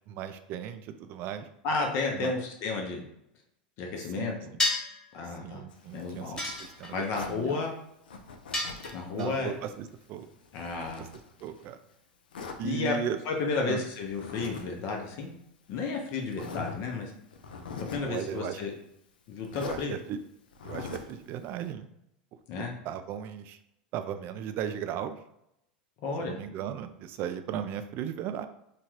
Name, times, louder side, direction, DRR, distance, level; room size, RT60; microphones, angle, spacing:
voice 1, 0.1-1.5 2.1-2.3 4.2-4.4 5.4-7.6 9.1-10.3 11.4-11.8 12.6-13.2 13.7-13.8 18.0-18.6 19.5-19.8 20.1-20.2 20.6-21.9 22.6-23.6 23.9-25.2 26.2-28.5, right 9 dB, 45° right, 9 dB, 0.3 m, -36 dB
voice 2, 1.6-3.0 3.8-4.5 5.1-5.6 5.9-6.4 6.9-7.7 8.9-9.5 10.5-11.1 12.6-13.0 13.2-15.3 15.7-17.1 17.9-18.7 19.3-20.0 22.5-22.7 26.0-26.4, left 4 dB, 50° left, 2 dB, 0.7 m, -32 dB
sound 1, 4.6-5.0 6.4-7.1 8.5-9.3, left 2 dB, 15° left, 1.3 m, -30 dB
Zipper (clothing), 5.7-7.4 8.1-9.1 9.5-11.7 12.3-12.6 14.1-14.7 14.9-15.1 15.8-15.9 16.3-16.8 17.3-18.1 19.4-19.8 20.5-21.2, left 5 dB, 80° left, 0.4 m, -42 dB
2.9 x 2.3 x 3.0 m, 0.80 s
hypercardioid pair, 90°, 5 cm